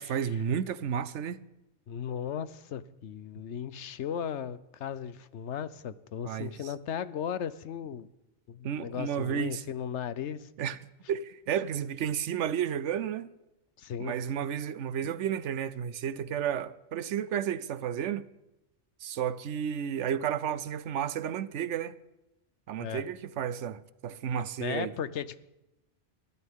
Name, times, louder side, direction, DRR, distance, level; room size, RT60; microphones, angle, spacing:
voice 1, 0.0-1.4 6.3-6.7 8.6-9.6 10.6-13.3 14.0-18.3 19.0-22.0 22.7-24.9, right 8 dB, 80° right, 1.0 m, -32 dB
voice 2, 1.9-8.1 8.5-10.5 13.8-14.1 22.8-23.0 24.6-25.4, left 8 dB, 75° left, 1.0 m, -36 dB
22.0 x 15.0 x 3.6 m
omnidirectional pair, 1.2 m